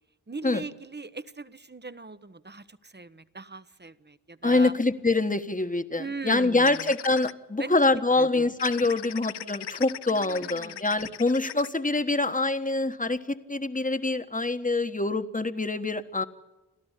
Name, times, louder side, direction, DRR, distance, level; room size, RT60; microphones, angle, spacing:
voice 1, 0.3-4.7 6.0-6.8 7.6-7.8 8.2-8.5 10.1-10.8, right 3 dB, 25° right, 14 dB, 1.0 m, -39 dB
voice 2, 4.4-16.2, left 2 dB, 20° left, 10 dB, 1.4 m, -25 dB
sound 1, 6.6-7.3 8.6-11.7, left 10 dB, 85° left, 0.6 m, -38 dB
29.0 x 13.0 x 8.3 m, 1.1 s
cardioid pair, 45°, 40 cm